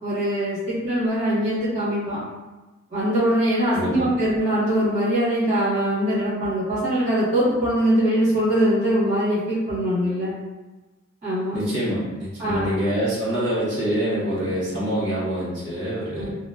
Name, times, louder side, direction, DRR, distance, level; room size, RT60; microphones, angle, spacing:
voice 1, 0.0-2.2 2.9-10.3 11.2-11.6 12.4-12.7 16.1-16.3, equal, 35° right, -10 dB, 1.3 m, -22 dB
voice 2, 3.7-4.1 11.5-16.3, equal, 55° right, -8 dB, 0.8 m, -25 dB
2.9 x 2.1 x 2.3 m, 1.2 s
head